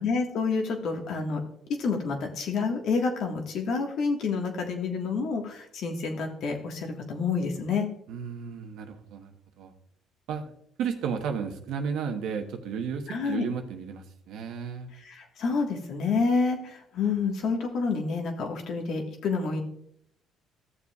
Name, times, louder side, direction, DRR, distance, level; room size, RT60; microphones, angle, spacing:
voice 1, 0.0-1.4 1.8-7.9 13.1-13.5 15.0-19.6, left 4 dB, 65° left, 3 dB, 1.5 m, -28 dB
voice 2, 8.1-9.3 9.6-9.7 10.3-10.5 10.8-14.9, right 6 dB, 70° right, 5 dB, 1.1 m, -33 dB
14.0 x 7.0 x 2.4 m, 0.71 s
supercardioid pair, 65°, 0 cm